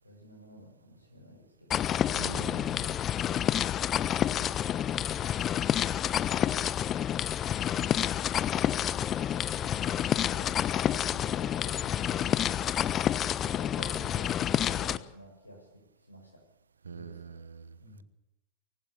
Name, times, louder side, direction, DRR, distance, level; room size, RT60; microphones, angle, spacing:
voice 1, 0.0-1.8 10.3-10.6 11.1-12.2 13.4-16.4 16.9-17.4 17.8-18.0, equal, 85° left, 0 dB, 7.0 m, -51 dB
sound 1, 1.7-15.0, left 10 dB, 30° left, 1.1 m, -29 dB
voice 2, 2.2-3.0 16.8-18.0, right 6 dB, 70° right, 16 dB, 1.1 m, -44 dB
sound 2, 13.7-13.9, equal, 10° left, 4.7 m, -53 dB
24.0 x 16.0 x 8.4 m, 0.92 s
figure-of-eight pair, 90°, 0 cm